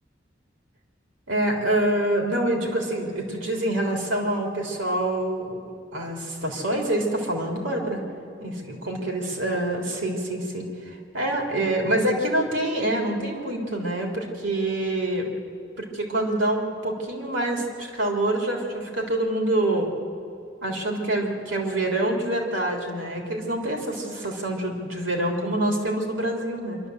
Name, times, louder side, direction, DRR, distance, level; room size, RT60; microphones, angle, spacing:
voice 1, 1.3-5.5 5.9-8.0 8.4-8.6 8.9-15.3 15.8-19.9 20.6-26.8, right 1 dB, 90° right, 1 dB, 3.8 m, -26 dB
25.5 x 12.5 x 8.2 m, 2.6 s
head